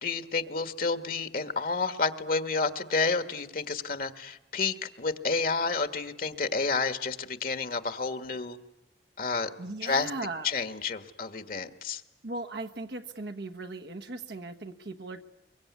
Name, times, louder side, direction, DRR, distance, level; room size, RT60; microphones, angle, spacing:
voice 1, 0.0-8.6 9.2-9.5 9.8-10.1 10.4-12.0, left 4 dB, 55° left, 9 dB, 1.6 m, -30 dB
voice 2, 9.6-10.5 12.2-15.2, right 2 dB, 70° right, 5 dB, 1.2 m, -38 dB
24.0 x 24.0 x 9.6 m, 0.94 s
head